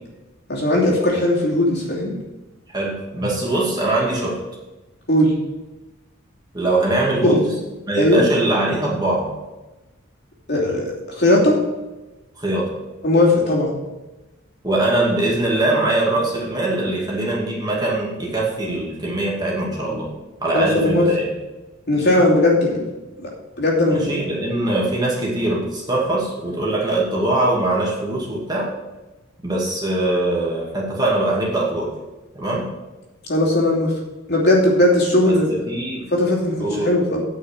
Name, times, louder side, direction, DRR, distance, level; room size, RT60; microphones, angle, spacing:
voice 1, 0.5-2.2 5.1-5.3 7.2-7.4 8.0-8.2 10.5-11.6 13.0-13.8 20.5-21.1 21.9-22.8 23.6-24.1 33.3-33.9 34.3-35.6 36.1-37.2, left 1 dB, 55° left, -3 dB, 2.8 m, -18 dB
voice 2, 2.7-4.4 6.5-7.5 7.9-9.3 12.4-12.7 14.6-20.1 20.4-21.3 23.9-28.7 29.4-31.9 32.3-32.7 35.2-36.0 36.6-36.9, right 2 dB, 20° right, -4 dB, 2.3 m, -22 dB
9.3 x 6.1 x 6.5 m, 1.1 s
head